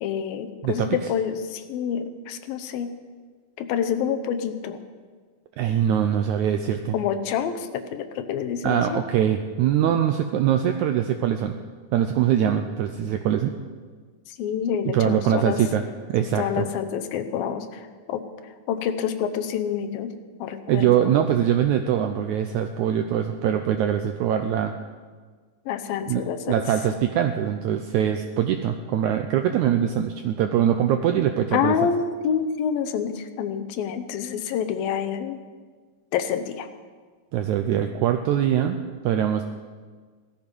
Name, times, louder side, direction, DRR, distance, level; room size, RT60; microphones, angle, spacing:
voice 1, 0.0-2.9 3.6-4.8 6.9-9.0 14.3-15.6 16.2-18.2 18.7-20.1 20.4-21.1 25.7-26.6 31.5-35.4 36.1-36.7, left 8 dB, 85° left, 9 dB, 2.7 m, -27 dB
voice 2, 5.6-7.0 8.6-11.6 11.9-13.5 14.9-15.8 16.1-16.7 20.7-24.8 26.0-31.9 37.3-38.8 39.0-39.4, right 10 dB, 85° right, 6 dB, 1.7 m, -23 dB
17.0 x 13.5 x 5.4 m, 1.5 s
omnidirectional pair, 4.1 m